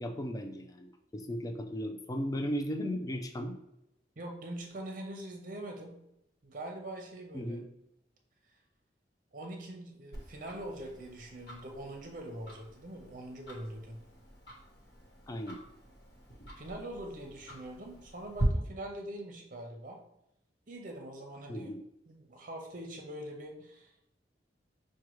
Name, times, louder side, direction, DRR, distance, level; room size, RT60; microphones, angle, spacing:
voice 1, 0.0-3.6 7.3-7.7 15.3-15.6 21.5-21.8, equal, 20° left, 5 dB, 0.4 m, -36 dB
voice 2, 4.2-6.0 6.4-7.6 9.3-14.0 16.6-20.0 20.7-21.8 22.1-23.9, right 1 dB, 50° right, 2 dB, 0.8 m, -43 dB
Tick-tock, 10.1-18.4, right 2 dB, 65° left, 1.1 m, -45 dB
6.1 x 2.2 x 3.0 m, 0.81 s
head